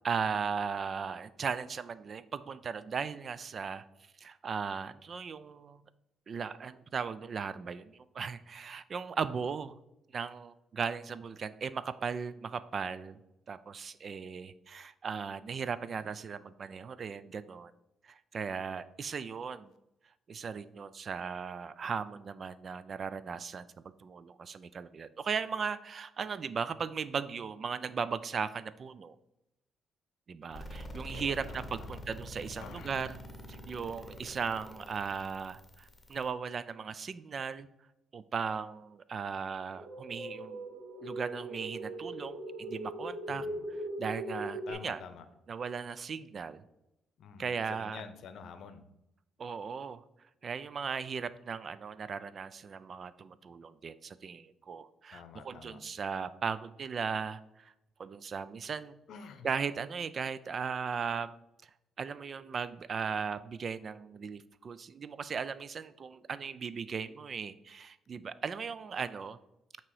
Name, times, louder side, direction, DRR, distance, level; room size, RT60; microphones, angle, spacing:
voice 1, 0.0-3.8 4.2-5.8 6.3-9.8 10.1-13.2 13.5-17.7 18.0-19.7 20.3-23.7 24.0-29.1 30.3-33.2 33.5-37.7 38.1-40.6 41.0-45.0 45.5-46.6 47.4-48.0 49.4-50.0 50.4-57.7 58.0-59.0 59.4-61.4 61.6-61.7 62.0-69.4, right 6 dB, 45° right, 15 dB, 0.3 m, -37 dB
sound 1, 30.5-36.3, left 1 dB, 20° left, 1.3 m, -46 dB
voice 2, 31.1-32.0 32.6-33.0 43.3-43.7 44.7-45.2 47.2-48.8 55.1-55.8 59.1-59.5, left 6 dB, 70° left, 10 dB, 0.7 m, -48 dB
sound 2, 39.7-44.7, right 1 dB, 75° right, 1.3 m, -40 dB
8.7 x 3.0 x 4.7 m, 0.87 s
cardioid pair, 90°, 0 cm